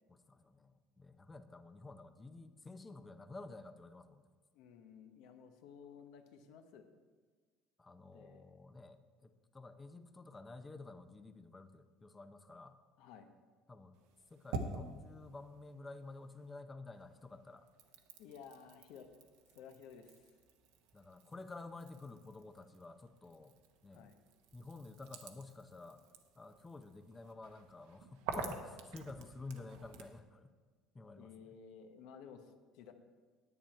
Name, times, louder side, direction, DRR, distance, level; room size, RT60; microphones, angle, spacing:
voice 1, 0.1-4.3 7.8-12.8 13.7-14.0 14.3-17.7 20.9-23.6 23.8-24.1 24.5-26.0 26.4-30.5 30.9-31.6, left 3 dB, 15° left, 10 dB, 0.5 m, -51 dB
voice 2, 4.5-6.8 8.1-8.6 13.0-13.3 18.2-19.1 19.5-20.3 23.9-24.1 31.2-32.9, left 7 dB, 70° left, 7 dB, 1.0 m, -55 dB
sound 1, 13.9-16.6 16.9-30.2, right 4 dB, 90° right, 1.0 m, -49 dB
10.0 x 8.9 x 4.4 m, 1.5 s
cardioid pair, 155°, 0 cm